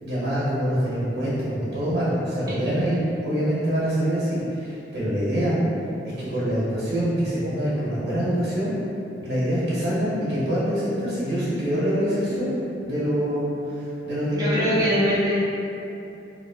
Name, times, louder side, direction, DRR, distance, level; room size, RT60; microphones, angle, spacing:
voice 1, 0.0-5.6 6.2-8.8 9.2-13.5 13.8-14.7, equal, 65° right, -9 dB, 1.1 m, -25 dB
voice 2, 14.3-15.4, equal, 20° right, -10 dB, 0.7 m, -22 dB
3.0 x 2.3 x 2.7 m, 2.8 s
head